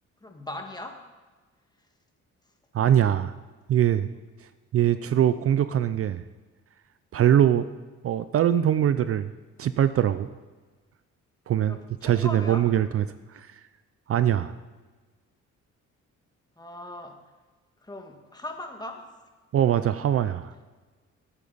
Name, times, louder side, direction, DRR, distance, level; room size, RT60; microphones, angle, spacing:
voice 1, 0.2-1.0 11.7-12.7 16.6-17.2 17.8-19.0, left 1 dB, 15° left, 3 dB, 1.8 m, -39 dB
voice 2, 2.7-3.3 3.7-4.1 4.7-6.2 7.1-7.7 8.0-9.3 9.6-10.3 11.5-11.8 12.0-13.6 14.1-14.5 19.5-20.6, right 10 dB, 50° right, 13 dB, 0.5 m, -22 dB
18.0 x 8.4 x 4.1 m, 1.3 s
cardioid pair, 90°, 30 cm